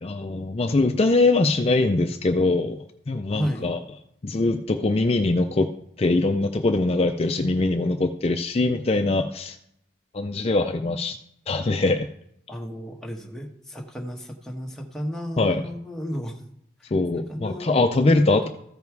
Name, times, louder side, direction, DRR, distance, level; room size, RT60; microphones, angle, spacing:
voice 1, 0.0-3.8 4.2-5.7 6.0-9.6 10.1-11.2 11.5-12.1 15.4-15.6 16.9-18.5, left 2 dB, 35° left, 6 dB, 0.5 m, -22 dB
voice 2, 3.3-3.7 12.5-16.4 17.2-18.5, equal, 5° left, 0 dB, 1.1 m, -33 dB
14.0 x 5.3 x 4.6 m, 0.74 s
head